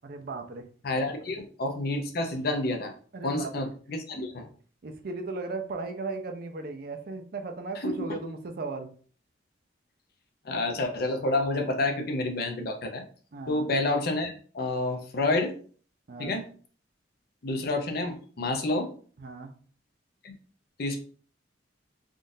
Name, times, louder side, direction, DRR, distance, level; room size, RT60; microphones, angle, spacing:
voice 1, 0.0-0.6 1.3-1.4 3.1-3.6 4.8-8.9 13.3-13.7 16.1-16.4 19.2-19.5, right 3 dB, 50° right, 5 dB, 0.5 m, -36 dB
voice 2, 0.8-2.9 3.2-4.5 7.8-8.1 10.4-13.0 13.5-15.5 16.2-16.4 17.4-18.9 20.2-20.3 20.8-21.0, left 2 dB, 55° left, 5 dB, 0.6 m, -29 dB
3.6 x 2.5 x 2.6 m, 0.43 s
head